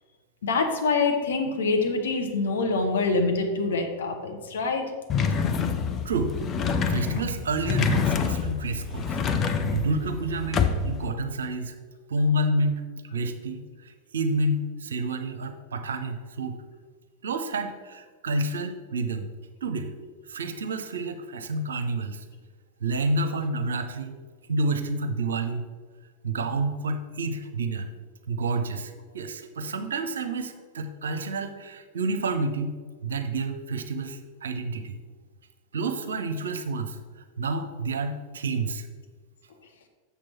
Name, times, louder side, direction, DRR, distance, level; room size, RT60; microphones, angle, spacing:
voice 1, 0.4-4.9, left 3 dB, 65° left, 3 dB, 1.0 m, -25 dB
sound 1, 5.1-11.1, left 6 dB, 25° left, 0.6 m, -27 dB
voice 2, 6.0-6.4 6.9-11.7 12.1-12.8 13.1-16.6 17.2-19.3 19.6-19.9 20.3-22.2 22.8-24.2 24.5-25.6 26.2-27.9 28.3-32.8 33.0-35.0 35.7-37.0 37.4-38.9, right 2 dB, 65° right, 8 dB, 0.6 m, -29 dB
7.0 x 6.1 x 4.4 m, 1.5 s
figure-of-eight pair, 90°, 0 cm